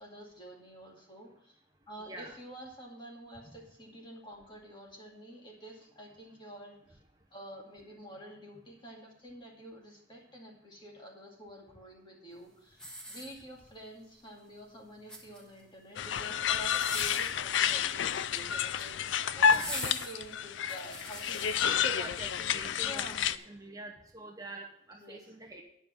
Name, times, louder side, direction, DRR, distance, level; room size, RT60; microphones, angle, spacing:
voice 1, 0.0-1.6 1.9-7.0 7.3-22.0 22.8-23.2 24.9-25.3, equal, 25° left, -1 dB, 2.2 m, -48 dB
voice 2, 2.0-2.4 19.5-19.7 21.6-23.1 23.5-25.6, right 2 dB, 20° right, 2 dB, 0.9 m, -45 dB
sound 1, 12.7-13.8 14.9-15.6 16.6-17.4 18.5-18.9 19.5-21.6 22.2-22.3, right 1 dB, 5° left, 1.5 m, -43 dB
sound 2, 16.0-23.4, left 8 dB, 85° left, 0.4 m, -30 dB
10.0 x 5.3 x 7.4 m, 0.72 s
head